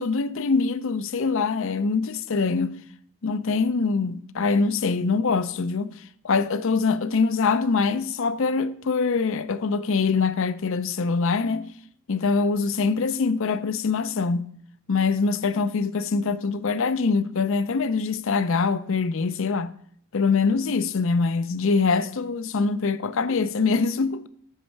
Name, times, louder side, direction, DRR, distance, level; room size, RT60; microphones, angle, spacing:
voice 1, 0.0-2.8 3.2-5.9 6.2-11.7 12.1-14.5 14.9-19.7 20.1-24.3, left 4 dB, 60° left, 0.5 m, -24 dB
8.2 x 6.5 x 4.6 m
head